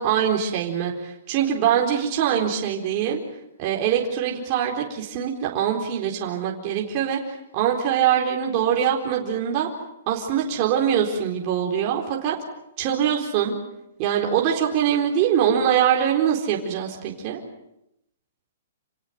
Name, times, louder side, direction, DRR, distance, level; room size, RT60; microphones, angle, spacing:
voice 1, 0.0-3.2 3.6-9.7 10.1-12.4 12.8-13.5 14.0-17.4, right 9 dB, 25° right, 0 dB, 4.1 m, -23 dB
29.5 x 18.0 x 9.2 m, 0.84 s
hypercardioid pair, 175°, 0 cm